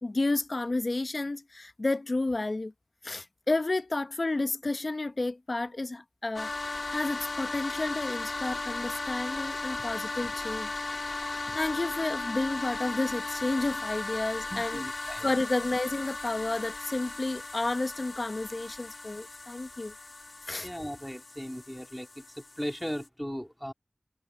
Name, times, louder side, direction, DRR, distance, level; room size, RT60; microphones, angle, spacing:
voice 1, 0.0-2.7 3.0-6.5 6.9-10.7 11.2-14.8 15.2-19.9 20.5-20.7, left 2 dB, 70° left, 0.8 m, -31 dB
sound 1, 6.4-23.1, left 3 dB, 90° left, 1.5 m, -37 dB
voice 2, 14.5-15.3 20.6-23.7, equal, 5° left, 2.7 m, -37 dB
wide cardioid pair, 50°, 0 cm